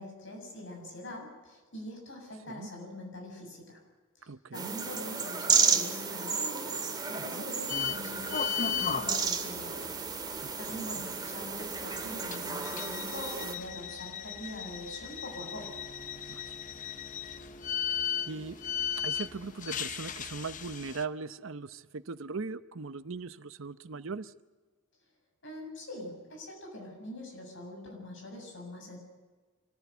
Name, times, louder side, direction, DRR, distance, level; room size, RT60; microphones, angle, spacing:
voice 1, 0.0-3.8 4.2-9.8 10.3-15.8 25.4-29.0, left 1 dB, 60° left, 1 dB, 7.5 m, -43 dB
voice 2, 4.2-4.7 7.1-7.4 10.4-11.0 16.3-16.6 17.8-18.6 18.9-24.3, right 4 dB, 65° right, 14 dB, 0.8 m, -40 dB
sound 1, 4.5-13.5, right 5 dB, 20° right, 2.0 m, -32 dB
sound 2, 7.7-21.0, left 8 dB, 40° left, 0.8 m, -37 dB
Bowed string instrument, 15.0-19.6, right 2 dB, 15° left, 2.6 m, -52 dB
26.5 x 14.5 x 8.1 m, 1.3 s
head